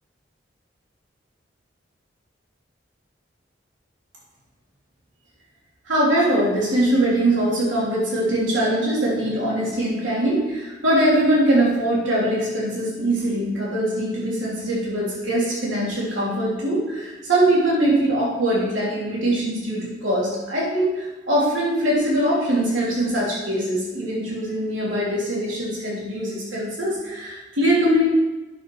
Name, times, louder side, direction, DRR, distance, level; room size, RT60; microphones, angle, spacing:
voice 1, 5.9-28.0, right 1 dB, 90° right, -6 dB, 3.2 m, -22 dB
9.9 x 6.5 x 4.9 m, 1.1 s
head